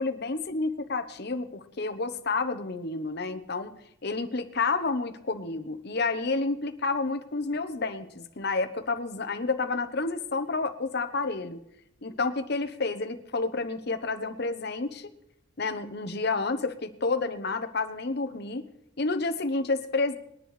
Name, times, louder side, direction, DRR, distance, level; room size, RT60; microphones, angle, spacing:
voice 1, 0.0-3.7 4.0-11.6 12.0-15.1 15.6-18.6 19.0-20.1, left 3 dB, 50° left, 9 dB, 0.9 m, -30 dB
21.0 x 10.5 x 3.3 m, 0.74 s
head